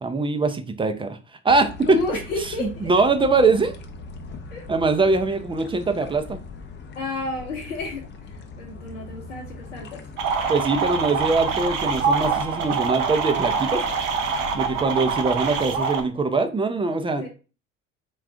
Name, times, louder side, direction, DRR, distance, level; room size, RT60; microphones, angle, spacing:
voice 1, 0.0-1.2 1.4-2.0 2.4-3.7 4.7-6.4 10.5-13.8 14.5-17.2, right 3 dB, 15° right, 7 dB, 0.5 m, -22 dB
sound 1, 1.5-15.8, left 3 dB, 30° left, 0.6 m, -40 dB
voice 2, 1.8-2.9 4.5-4.6 6.9-10.0 17.2-17.3, left 3 dB, 75° left, 0 dB, 0.7 m, -32 dB
sound 2, 10.2-16.0, right 5 dB, 70° right, 0.7 m, -25 dB
3.7 x 2.3 x 3.6 m, 0.34 s
figure-of-eight pair, 60°, 38 cm